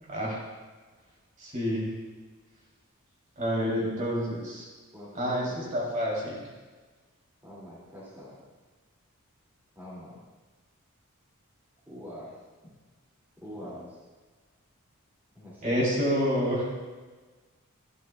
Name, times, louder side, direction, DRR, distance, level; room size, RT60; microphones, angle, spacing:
voice 1, 0.1-0.4 1.4-1.9 3.4-4.7 5.1-6.5 15.6-16.7, equal, 35° right, -4 dB, 3.1 m, -28 dB
voice 2, 3.5-3.9 4.9-5.8 7.4-8.4 9.8-10.2 11.9-12.3 12.6-12.7 13.4-14.0 15.3-16.0, equal, 10° right, -8 dB, 2.4 m, -44 dB
12.0 x 12.0 x 2.3 m, 1.3 s
head